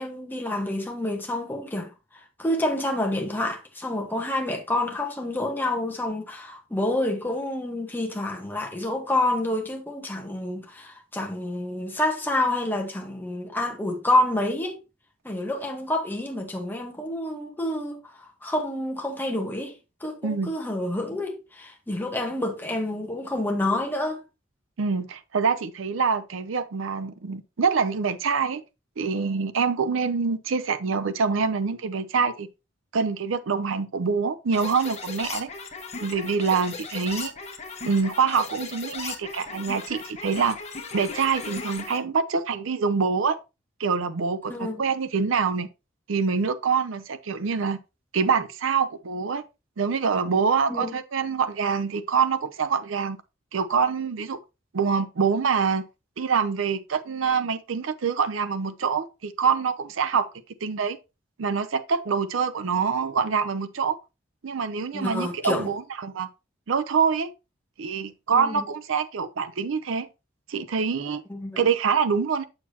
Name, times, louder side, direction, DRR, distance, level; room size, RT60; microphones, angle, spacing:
voice 1, 0.0-1.9 2.4-14.8 15.2-19.7 20.0-24.2 44.5-44.8 50.7-50.9 64.9-65.7 68.3-68.6 71.3-71.6, left 1 dB, 10° left, 1.3 m, -28 dB
voice 2, 24.8-28.6 29.0-32.5 32.9-35.5 36.0-37.3 37.8-40.6 40.9-43.4 43.8-45.7 46.1-47.8 48.1-49.4 49.8-53.2 53.5-54.4 54.7-55.8 56.2-60.3 60.6-61.0 61.4-64.0 64.4-66.3 66.7-67.3 67.8-70.1 70.5-71.2 71.6-72.4, right 5 dB, 85° right, 0.6 m, -25 dB
sound 1, 34.5-42.0, left 5 dB, 35° left, 1.3 m, -37 dB
7.1 x 6.6 x 2.8 m
head